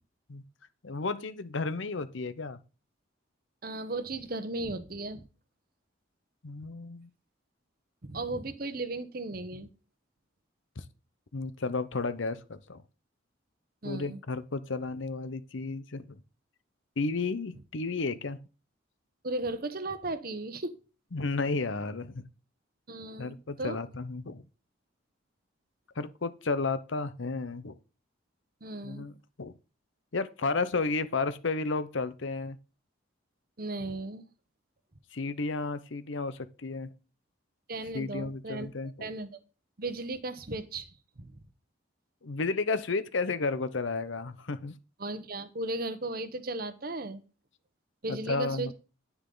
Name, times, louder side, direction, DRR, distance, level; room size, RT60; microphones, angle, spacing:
voice 1, 0.8-2.6 6.4-7.1 10.8-10.9 11.3-12.8 13.8-16.2 17.0-18.4 21.1-22.2 23.2-24.4 26.0-27.7 28.8-29.1 29.4-29.5 30.1-32.6 35.1-36.9 37.9-39.1 42.2-44.8 48.1-48.7, left 3 dB, 70° left, 0.8 m, -32 dB
voice 2, 3.6-5.2 8.0-9.7 13.8-14.2 19.2-20.8 22.9-23.8 28.6-29.1 33.6-34.3 37.7-38.7 39.0-39.4 39.8-41.4 45.0-47.2 48.0-48.7, right 2 dB, 45° right, 0.9 m, -36 dB
10.0 x 9.9 x 3.9 m
head